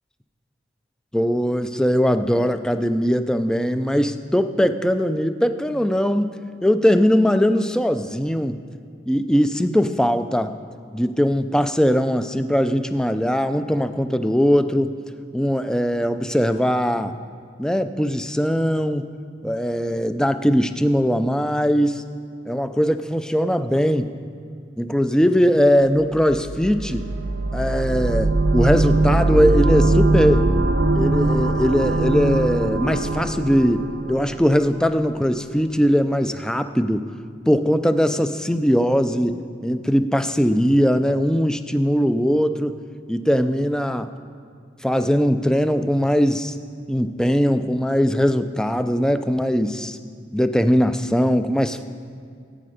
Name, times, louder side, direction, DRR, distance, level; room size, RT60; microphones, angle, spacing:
voice 1, 1.1-6.4 6.6-8.6 9.1-10.5 10.9-15.0 15.3-17.1 17.6-19.1 19.4-22.0 22.5-24.1 24.8-27.1 27.5-30.5 30.9-37.1 37.5-42.7 43.1-44.1 44.8-46.6 46.9-50.0 50.3-51.9, equal, 5° left, 9 dB, 0.4 m, -20 dB
sound 1, 26.1-34.9, right 2 dB, 80° right, 0.7 m, -21 dB
15.0 x 8.7 x 5.0 m, 2.3 s
head